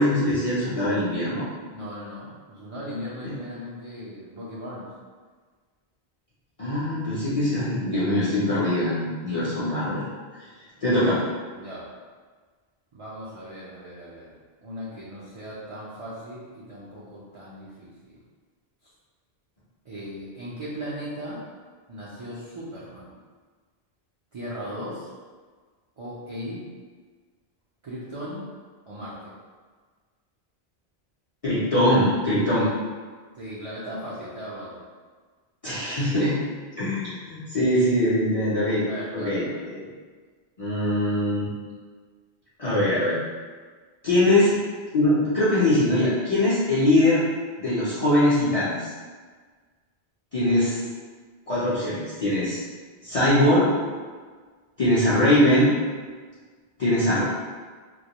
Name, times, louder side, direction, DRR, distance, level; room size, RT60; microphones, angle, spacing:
voice 1, 0.0-1.4 3.2-3.3 6.6-10.0 10.8-11.2 31.4-32.7 35.6-36.4 36.8-38.9 39.1-39.8 40.6-41.5 42.6-43.2 44.0-44.5 44.9-47.3 47.6-48.9 50.3-50.8 51.5-52.6 53.0-53.7 54.8-55.7 56.8-57.2, left 1 dB, 45° left, -11 dB, 0.5 m, -22 dB
voice 2, 1.7-4.9 10.8-11.9 12.9-18.2 18.8-18.9 19.8-21.4 21.9-23.2 24.3-25.1 26.0-26.6 27.8-28.5 28.8-29.3 33.3-34.8 38.9-39.4, equal, 50° right, -8 dB, 0.3 m, -38 dB
2.2 x 2.1 x 2.8 m, 1.5 s
omnidirectional pair, 1.1 m